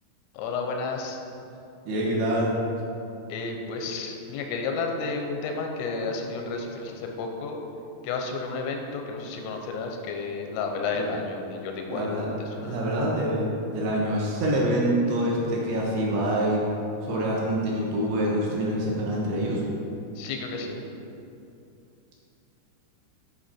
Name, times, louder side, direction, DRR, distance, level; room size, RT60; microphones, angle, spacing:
voice 1, 0.4-1.2 3.3-7.6 8.0-12.1 12.6-12.8 20.2-20.8, left 4 dB, 85° left, 3 dB, 3.3 m, -31 dB
voice 2, 1.9-2.5 10.9-11.1 11.9-12.3 12.6-16.6 17.0-19.6, right 1 dB, 70° right, -3 dB, 2.8 m, -26 dB
11.0 x 5.0 x 4.3 m, 2.7 s
omnidirectional pair, 5.9 m